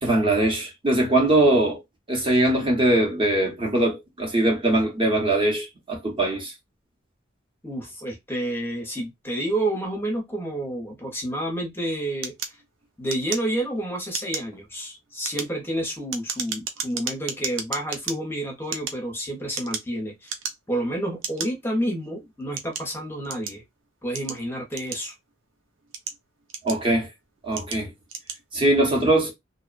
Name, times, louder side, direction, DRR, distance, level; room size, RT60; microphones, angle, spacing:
voice 1, 0.0-1.8 2.1-6.5 26.6-27.1 27.4-27.9 28.5-29.3, right 1 dB, 25° right, 0.7 m, -21 dB
voice 2, 7.6-12.3 13.0-20.3 20.7-23.6 24.0-25.1, right 1 dB, 10° left, 0.6 m, -29 dB
sound 1, 12.2-13.8 14.1-14.5 15.1-18.2 18.6-19.9 20.2-20.8 21.2-21.5 22.1-23.6 24.1-25.3 25.8-27.0 27.5-27.8 28.1-28.4, right 6 dB, 80° right, 0.5 m, -33 dB
2.7 x 2.1 x 2.4 m
head